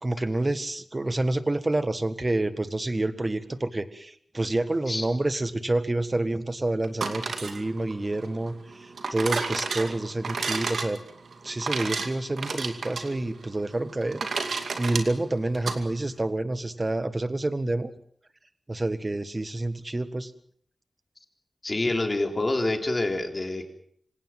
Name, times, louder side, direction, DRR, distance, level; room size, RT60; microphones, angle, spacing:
voice 1, 0.0-11.0 11.4-17.9 18.7-20.3, right 2 dB, 25° right, 12 dB, 1.6 m, -28 dB
sound 1, 6.8-15.8, right 4 dB, 85° right, 2.4 m, -32 dB
voice 2, 21.6-23.6, left 2 dB, 30° left, 4 dB, 3.7 m, -27 dB
26.0 x 17.5 x 7.5 m, 0.63 s
wide cardioid pair, 90°, 0 cm